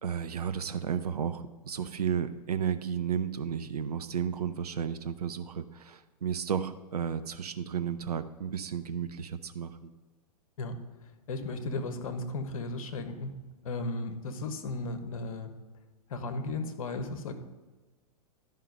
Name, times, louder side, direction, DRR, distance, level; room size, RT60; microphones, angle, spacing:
voice 1, 0.0-9.9, right 7 dB, 70° right, 10 dB, 0.6 m, -33 dB
voice 2, 11.3-13.4 13.6-15.5 16.1-17.3, left 2 dB, 60° left, 7 dB, 1.2 m, -35 dB
11.5 x 5.5 x 5.4 m, 1.3 s
figure-of-eight pair, 105°, 20 cm